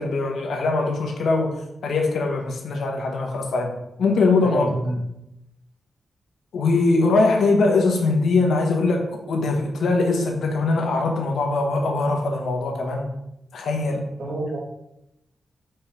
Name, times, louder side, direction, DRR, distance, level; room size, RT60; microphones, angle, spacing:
voice 1, 0.0-1.6 1.8-4.7 6.5-13.1 13.5-14.0, left 3 dB, 80° left, 1 dB, 1.4 m, -22 dB
voice 2, 4.4-5.0 14.2-14.7, right 1 dB, 70° right, -3 dB, 2.3 m, -28 dB
5.4 x 4.5 x 5.2 m, 0.85 s
wide cardioid pair, 155°, 0 cm